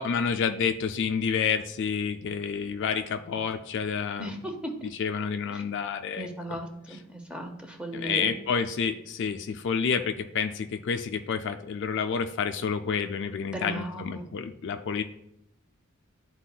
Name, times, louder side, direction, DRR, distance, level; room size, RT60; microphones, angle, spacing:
voice 1, 0.0-4.4 5.0-6.3 7.9-15.0, left 6 dB, 55° left, 7 dB, 0.4 m, -29 dB
voice 2, 4.2-4.9 5.5-5.6 6.2-8.3 13.5-14.3, right 1 dB, 5° right, 3 dB, 0.7 m, -36 dB
11.5 x 4.0 x 2.3 m, 0.78 s
head